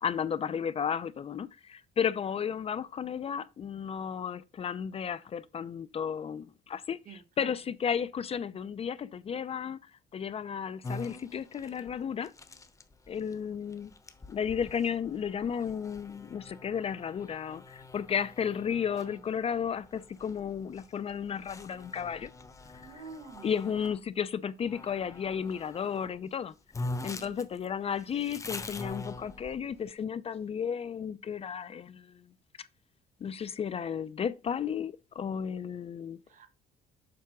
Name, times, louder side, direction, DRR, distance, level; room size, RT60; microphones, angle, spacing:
voice 1, 0.0-12.3 13.1-13.9 14.3-22.3 23.4-32.3 32.6-32.7 33.2-36.2, left 7 dB, 35° left, 0.5 m, -33 dB
voice 2, 7.0-7.5 19.1-19.2 22.8-23.5 27.0-27.4 36.3-36.5, right 5 dB, 50° right, 1.5 m, -48 dB
sound 1, 10.8-24.0 24.7-26.1 26.4-26.5 26.7-29.8, left 2 dB, 20° left, 0.9 m, -44 dB
7.6 x 3.4 x 6.0 m
cardioid pair, 110°, 17 cm